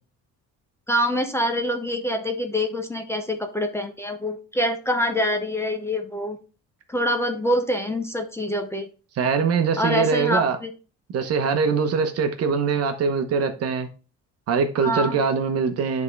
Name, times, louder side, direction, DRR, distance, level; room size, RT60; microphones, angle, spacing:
voice 1, 0.9-6.4 6.9-8.9 9.8-10.7 14.8-15.2, equal, 10° left, 0.6 m, -25 dB
voice 2, 9.2-10.6 11.1-13.9 14.5-16.0, right 5 dB, 55° right, 1.0 m, -22 dB
11.0 x 3.6 x 3.3 m
cardioid pair, 150°, 29 cm